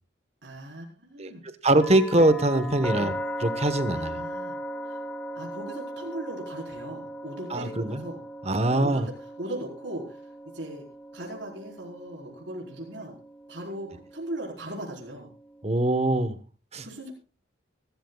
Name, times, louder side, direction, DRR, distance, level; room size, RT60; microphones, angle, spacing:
voice 1, 0.4-1.4 3.0-3.2 3.9-4.6 4.8-5.0 5.3-8.2 8.7-10.9 11.1-13.1 13.5-15.3 16.8-17.1, right 1 dB, 60° right, 4.3 m, -38 dB
voice 2, 1.6-3.1 3.4-4.3 7.5-7.6 8.5-9.0 15.6-16.4 16.7-16.9, right 1 dB, 35° right, 1.1 m, -22 dB
sound 1, 1.8-15.7, equal, 5° left, 1.1 m, -38 dB
24.5 x 13.0 x 2.3 m
head